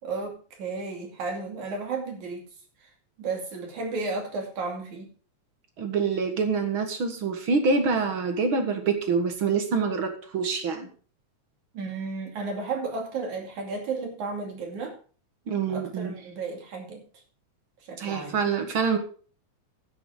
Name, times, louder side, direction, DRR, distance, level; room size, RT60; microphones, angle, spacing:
voice 1, 0.0-2.5 3.2-5.1 11.7-15.0 15.7-17.0 17.9-18.4, right 4 dB, 75° right, 1 dB, 4.0 m, -33 dB
voice 2, 5.8-10.9 15.5-16.1 18.0-19.0, right 5 dB, 50° right, 6 dB, 2.1 m, -26 dB
11.0 x 9.2 x 4.8 m, 0.41 s
omnidirectional pair, 3.4 m